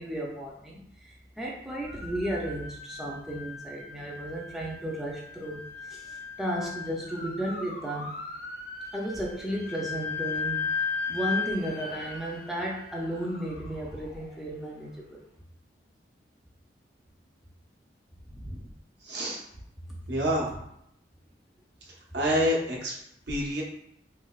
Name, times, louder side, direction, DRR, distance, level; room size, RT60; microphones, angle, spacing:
voice 1, 0.0-8.2 8.9-10.7 11.1-15.2, right 1 dB, ahead, -4 dB, 0.3 m, -34 dB
sound 1, 1.8-14.9, left 5 dB, 55° left, 0.5 m, -37 dB
voice 2, 19.0-19.4 20.1-20.6 22.1-22.9 23.3-23.6, equal, 70° right, -3 dB, 0.8 m, -28 dB
3.1 x 2.8 x 2.3 m, 0.77 s
head